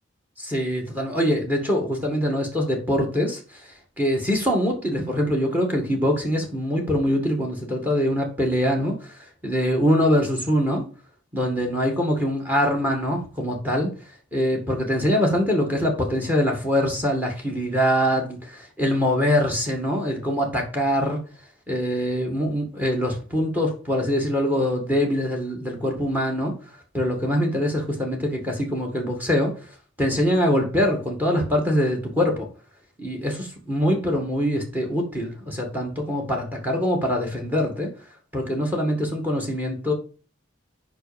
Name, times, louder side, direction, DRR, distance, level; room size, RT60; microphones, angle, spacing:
voice 1, 0.4-3.6 4.0-10.8 11.3-13.9 14.3-21.2 21.7-26.5 26.9-32.5 33.0-37.9 38.3-39.9, equal, 10° right, 2 dB, 2.0 m, -23 dB
8.1 x 5.5 x 5.2 m, 0.37 s
head